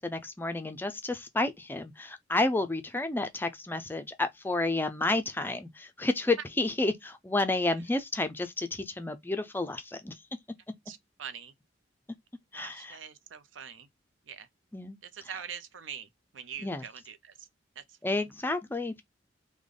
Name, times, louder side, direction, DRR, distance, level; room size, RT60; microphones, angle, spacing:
voice 1, 0.0-10.2 12.5-13.0 14.7-15.0 16.6-16.9 18.0-19.0, left 2 dB, 10° left, 0.3 m, -30 dB
voice 2, 10.9-11.5 12.5-13.9 14.3-14.5 15.0-17.5 17.8-17.9, right 8 dB, 90° right, 0.5 m, -43 dB
3.3 x 2.1 x 3.7 m
head